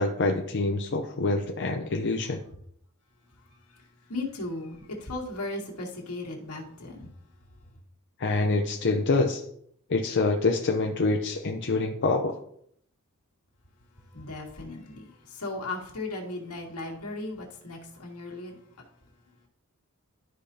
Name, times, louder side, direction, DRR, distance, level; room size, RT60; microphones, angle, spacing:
voice 1, 0.0-2.4 8.2-9.4 9.9-12.4, left 3 dB, 55° left, 2 dB, 0.7 m, -26 dB
voice 2, 4.1-7.1 14.1-15.0 15.4-18.5, left 2 dB, 80° left, -2 dB, 2.1 m, -36 dB
12.5 x 5.0 x 2.8 m, 0.68 s
head